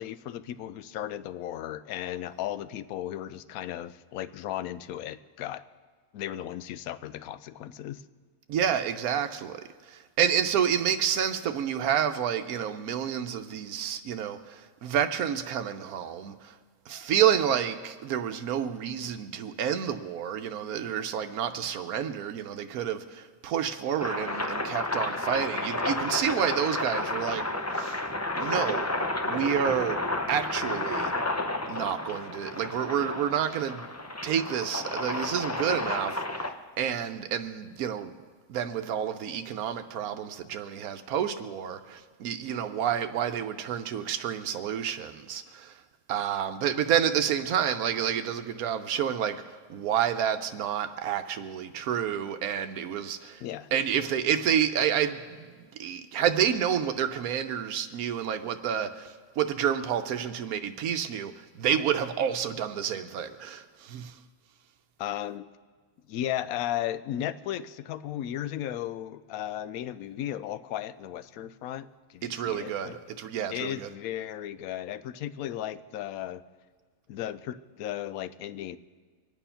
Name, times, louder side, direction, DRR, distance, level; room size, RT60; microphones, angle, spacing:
voice 1, 0.0-5.6 6.1-8.0 53.4-53.7 65.0-65.5 66.1-73.0 73.5-76.4 77.1-78.8, left 12 dB, 80° left, 15 dB, 1.1 m, -35 dB
voice 2, 8.5-16.6 16.9-28.0 28.4-28.9 29.3-30.0 30.3-31.1 31.7-33.9 34.2-36.5 36.8-38.1 38.5-45.8 46.1-49.4 49.7-53.4 53.7-55.5 55.8-64.2 72.2-73.9, right 9 dB, 85° right, 8 dB, 1.2 m, -29 dB
sound 1, 24.0-36.5, left 2 dB, 15° left, 0.5 m, -31 dB
23.5 x 9.2 x 5.7 m, 1.5 s
omnidirectional pair, 1.5 m